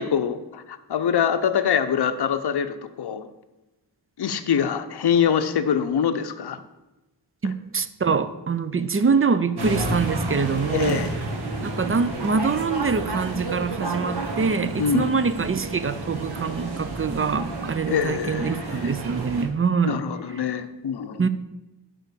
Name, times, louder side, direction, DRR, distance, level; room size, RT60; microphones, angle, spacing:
voice 1, 0.0-3.3 4.2-6.6 10.7-11.2 14.8-15.1 17.9-18.9 19.8-21.3, left 7 dB, 60° left, 8 dB, 0.7 m, -24 dB
voice 2, 7.4-11.0 11.6-20.0 21.2-21.3, right 5 dB, 30° right, 13 dB, 0.4 m, -24 dB
sound 1, 9.6-19.4, right 2 dB, 60° right, 1.6 m, -31 dB
9.4 x 3.8 x 6.8 m, 1.0 s
wide cardioid pair, 90°, 44 cm